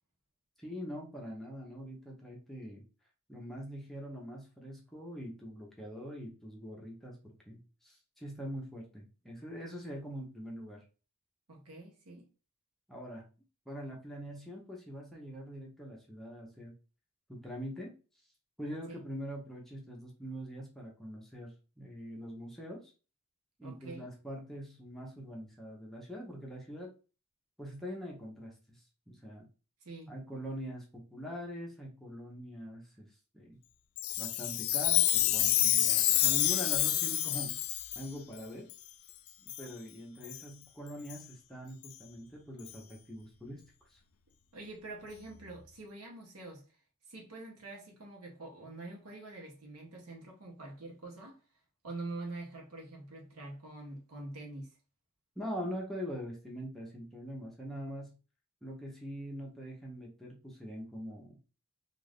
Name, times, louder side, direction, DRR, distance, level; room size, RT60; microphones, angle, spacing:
voice 1, 0.6-2.8 3.3-10.8 12.9-13.2 13.7-16.7 17.3-17.9 18.6-22.9 23.6-26.9 27.6-29.5 30.1-33.1 33.3-33.6 34.2-37.6 38.0-38.7 39.4-44.0 55.4-58.2 58.6-61.4, equal, ahead, 0.6 m, -43 dB
voice 2, 11.5-12.3 18.9-19.0 23.6-24.1 29.8-30.2 44.5-46.8 47.1-51.4 51.8-54.8, right 2 dB, 85° right, 0.9 m, -45 dB
Chime, 34.0-38.1 38.7-38.8 39.5-39.7 40.2-40.4 41.1-41.2 41.8-41.9 42.7-42.8, left 13 dB, 70° left, 0.3 m, -28 dB
2.5 x 2.4 x 3.3 m
head